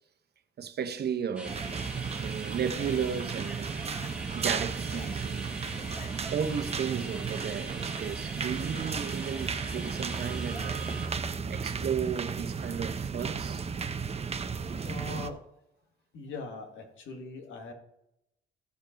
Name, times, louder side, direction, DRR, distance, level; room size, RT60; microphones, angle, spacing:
voice 1, 0.6-1.7 2.2-3.8 4.3-5.5 6.3-11.2 11.4-13.7, right 7 dB, 55° right, 1.0 m, -34 dB
sound 1, 1.4-11.1, right 2 dB, 5° right, 2.0 m, -42 dB
sound 2, 1.4-15.3, right 5 dB, 30° right, 0.8 m, -34 dB
Zipper (clothing), 1.5-2.1 2.7-3.2 3.8-4.2 4.8-5.2 5.7-6.2, left 6 dB, 40° left, 0.7 m, -50 dB
voice 2, 14.8-15.4 16.1-17.7, left 2 dB, 75° left, 2.1 m, -41 dB
14.0 x 5.2 x 5.3 m
cardioid pair, 90°, 20 cm